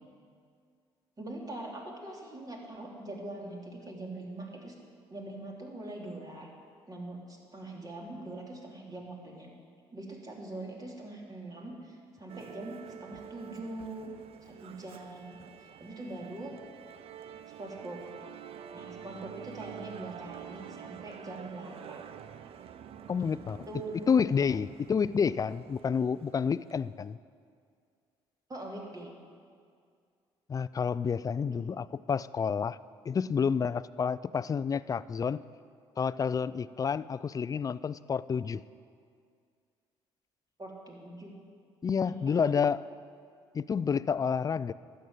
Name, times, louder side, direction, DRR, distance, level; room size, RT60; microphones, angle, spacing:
voice 1, 1.2-4.7 5.1-6.5 6.9-9.5 9.9-14.1 14.4-16.5 17.6-18.0 18.7-22.1 23.2-23.4 23.7-24.2 28.5-29.1 31.5-31.6 40.6-41.3 42.0-42.1 42.4-42.6, right 2 dB, 35° right, -1 dB, 3.2 m, -43 dB
Musical instrument, 12.3-27.0, right 8 dB, 60° right, 0.6 m, -48 dB
voice 2, 23.1-23.7 24.1-27.2 30.5-32.8 33.1-35.4 36.0-38.6 41.8-42.8 43.5-44.7, left 6 dB, 30° left, 18 dB, 0.4 m, -29 dB
12.0 x 7.8 x 8.8 m, 2.2 s
supercardioid pair, 65°, 11 cm